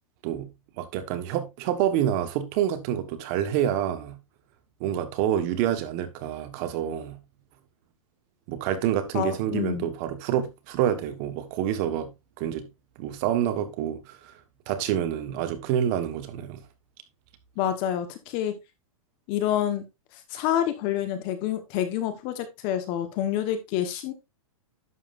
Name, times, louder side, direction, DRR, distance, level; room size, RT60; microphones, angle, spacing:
voice 1, 0.8-4.2 4.8-7.2 8.5-12.7 13.0-14.4 14.7-16.6, right 10 dB, 30° right, 1.4 m, -27 dB
voice 2, 9.1-9.9 17.6-18.5 19.3-19.8 20.1-24.1, left 10 dB, 30° left, 1.2 m, -28 dB
11.0 x 7.4 x 2.6 m
hypercardioid pair, 165°, 18 cm